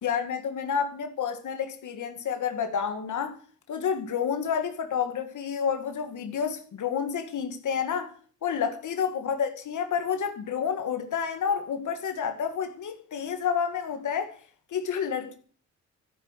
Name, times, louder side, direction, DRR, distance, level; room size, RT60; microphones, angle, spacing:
voice 1, 0.0-3.4 3.7-8.1 8.4-14.4 14.7-15.3, left 7 dB, 80° left, 2.1 m, -29 dB
14.0 x 8.2 x 8.2 m
cardioid pair, 65°, 30 cm